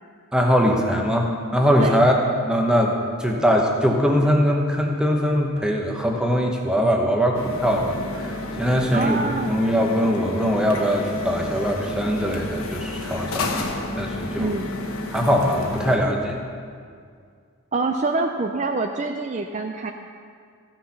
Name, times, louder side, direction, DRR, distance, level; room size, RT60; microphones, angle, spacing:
voice 1, 0.3-2.2 2.4-14.5 15.1-16.4, equal, 5° right, 0 dB, 0.9 m, -21 dB
sound 1, 7.3-16.0, left 2 dB, 70° left, 1.2 m, -31 dB
voice 2, 8.9-9.5 14.4-14.7 17.7-19.9, right 3 dB, 30° right, 4 dB, 0.4 m, -25 dB
14.5 x 6.3 x 5.8 m, 2.2 s
head